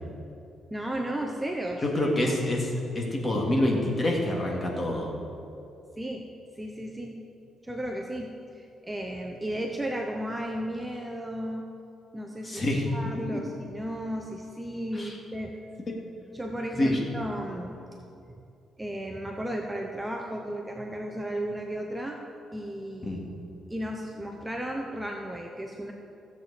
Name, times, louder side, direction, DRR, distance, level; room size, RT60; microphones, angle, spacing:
voice 1, 0.7-2.1 6.0-6.2 6.6-7.2 7.6-11.7 12.1-12.6 12.9-15.6 16.3-17.8 18.8-22.2 22.5-23.4 23.7-25.9, right 1 dB, 10° right, 1 dB, 0.8 m, -34 dB
voice 2, 1.8-5.1 12.4-12.9 13.3-13.4 14.9-15.2 16.8-17.0 23.0-23.2, left 1 dB, 25° left, -1 dB, 2.1 m, -27 dB
15.5 x 7.6 x 4.2 m, 2.7 s
cardioid pair, 120°, 0 cm